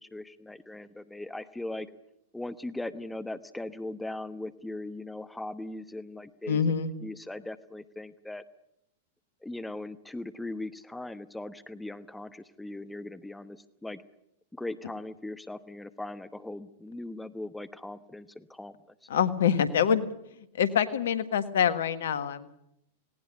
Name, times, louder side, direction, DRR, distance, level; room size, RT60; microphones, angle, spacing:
voice 1, 0.0-1.9 2.3-6.7 7.0-8.4 9.4-14.0 14.5-18.7, left 2 dB, 5° left, 12 dB, 1.0 m, -39 dB
voice 2, 6.5-6.9 19.1-20.1 20.6-22.6, left 8 dB, 65° left, 13 dB, 1.5 m, -25 dB
19.0 x 18.5 x 9.9 m, 0.80 s
figure-of-eight pair, 95°, 0 cm